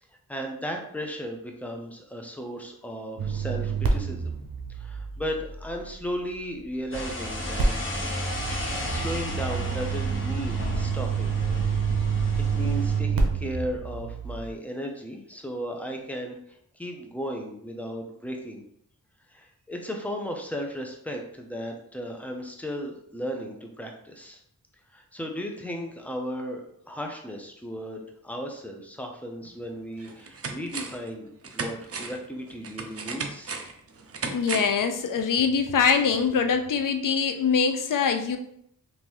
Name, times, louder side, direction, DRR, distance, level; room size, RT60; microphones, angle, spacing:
voice 1, 0.3-4.3 4.7-7.7 8.0-8.1 8.6-11.3 12.4-16.4 16.7-18.6 19.3-24.4 24.9-33.6, equal, 5° left, 2 dB, 0.7 m, -35 dB
sound 1, 3.2-6.3 7.6-14.5, right 5 dB, 80° right, 0.7 m, -28 dB
sound 2, 6.9-13.0, equal, 35° left, 1.0 m, -33 dB
sound 3, 29.4-29.5 30.0-31.1 31.4-34.8 35.2-35.3, right 4 dB, 45° right, 0.5 m, -35 dB
voice 2, 34.3-38.4, left 6 dB, 65° left, 7 dB, 0.5 m, -23 dB
3.7 x 2.6 x 3.0 m, 0.70 s
cardioid pair, 55°, 35 cm